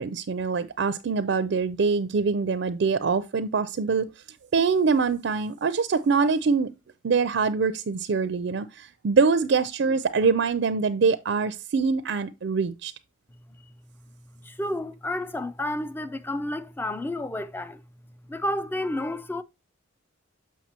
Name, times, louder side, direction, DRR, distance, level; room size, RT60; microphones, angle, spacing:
voice 1, 0.0-4.1 4.5-6.7 7.0-12.9, right 5 dB, 60° right, 0.4 m, -24 dB
voice 2, 14.3-17.8 18.3-19.4, left 1 dB, 10° left, 0.3 m, -31 dB
7.3 x 5.7 x 2.8 m
head